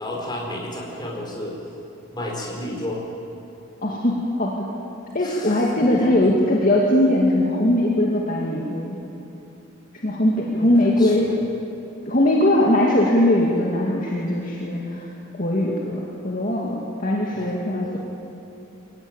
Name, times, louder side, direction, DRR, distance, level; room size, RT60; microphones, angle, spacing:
voice 1, 0.0-1.6 2.1-3.0 5.2-6.3 10.5-10.7 11.0-11.4 17.3-17.5 17.8-18.0, left 1 dB, 20° left, -1 dB, 4.5 m, -32 dB
voice 2, 3.8-4.7 5.1-9.0 10.0-11.3 12.1-15.1 15.4-18.0, left 1 dB, 40° left, -3 dB, 2.2 m, -20 dB
23.0 x 17.5 x 9.1 m, 2.8 s
head